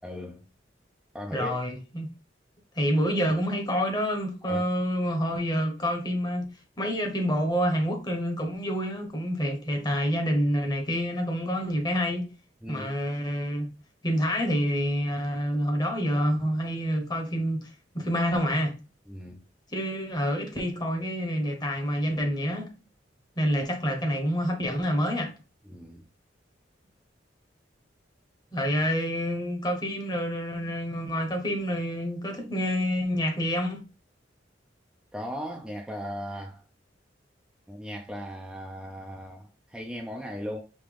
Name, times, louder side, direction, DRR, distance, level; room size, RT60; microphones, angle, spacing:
voice 1, 0.0-0.5 1.1-1.5 4.4-4.6 12.6-12.9 19.1-19.4 25.7-26.0 35.1-36.6 37.7-40.6, equal, 5° right, 0.5 m, -37 dB
voice 2, 1.3-2.1 2.7-6.5 6.8-12.3 12.7-13.7 14.0-18.7 19.7-22.7 23.4-25.3 28.5-33.8, equal, 20° left, 1.1 m, -27 dB
5.3 x 2.9 x 3.3 m
head